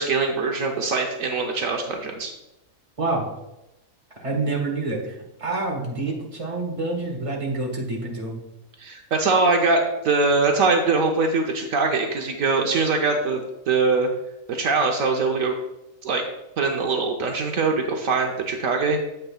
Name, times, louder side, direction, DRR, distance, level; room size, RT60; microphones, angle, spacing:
voice 1, 0.0-2.3 8.8-14.1 14.5-15.5 16.0-16.2 16.6-19.0, right 4 dB, 70° right, 2 dB, 1.2 m, -22 dB
voice 2, 3.0-3.3 4.2-8.4, right 2 dB, 25° right, 0 dB, 1.6 m, -27 dB
9.3 x 8.0 x 2.4 m, 0.92 s
omnidirectional pair, 1.5 m